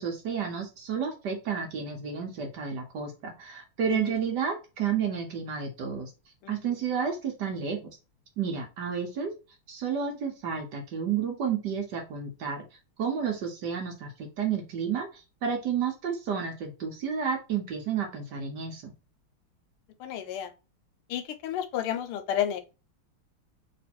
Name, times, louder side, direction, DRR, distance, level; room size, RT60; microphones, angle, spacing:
voice 1, 0.0-6.1 6.5-7.9 8.4-9.3 9.7-12.6 13.0-18.9, right 7 dB, 60° right, 1.2 m, -31 dB
voice 2, 20.0-20.5 21.1-22.6, left 10 dB, 85° left, 1.5 m, -31 dB
3.2 x 3.0 x 4.2 m
omnidirectional pair, 2.4 m